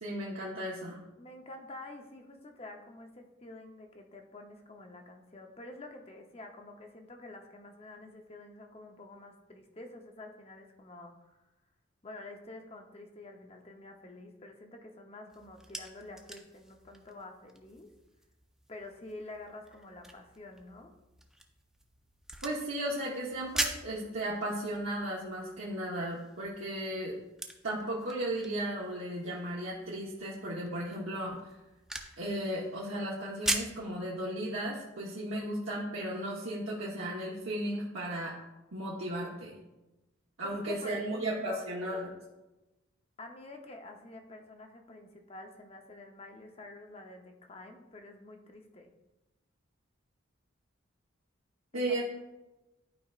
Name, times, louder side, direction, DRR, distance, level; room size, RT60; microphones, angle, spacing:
voice 1, 0.0-1.0 22.4-27.1 27.6-31.6 32.2-38.3 38.7-39.5 40.4-42.1 51.7-52.0, right 1 dB, 75° right, -6 dB, 1.1 m, -35 dB
voice 2, 1.2-11.4 12.0-17.9 18.7-20.9 40.4-41.6 43.2-48.9 51.7-52.0, left 2 dB, 30° left, 4 dB, 0.7 m, -48 dB
sound 1, 15.3-33.8, right 1 dB, ahead, 0.4 m, -42 dB
12.0 x 4.9 x 2.4 m, 1.0 s
head